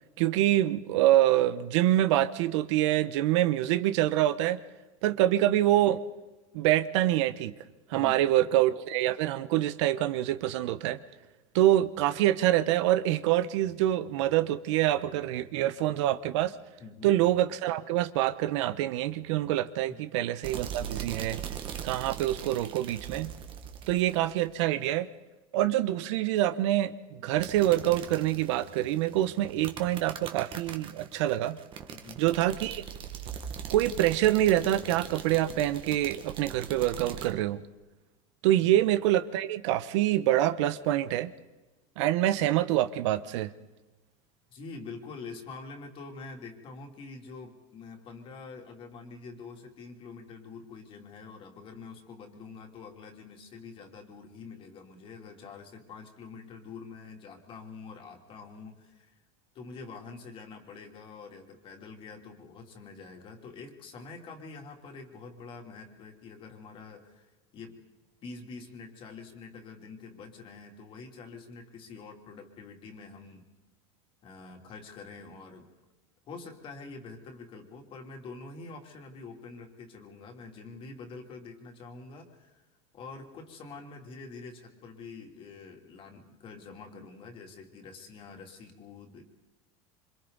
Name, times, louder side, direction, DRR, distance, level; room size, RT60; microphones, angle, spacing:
voice 1, 0.2-4.6 5.0-6.0 6.5-7.5 7.9-11.0 11.5-16.5 17.0-21.4 21.8-23.3 23.9-25.1 25.5-31.6 32.2-32.8 33.7-37.6 38.4-41.3 42.0-43.5, right 13 dB, 75° right, 13 dB, 1.0 m, -26 dB
voice 2, 7.9-8.4 16.8-17.1 19.9-20.0 31.9-32.2 38.6-38.8 44.5-59.1 59.5-67.3 67.5-67.8 68.2-73.5 74.2-75.7 76.3-82.7 82.9-89.2, left 4 dB, 35° left, 3 dB, 3.1 m, -46 dB
sound 1, 20.4-24.6 27.4-37.3, right 8 dB, 35° right, 1.8 m, -41 dB
27.5 x 25.0 x 4.1 m, 1.1 s
supercardioid pair, 145°, 15 cm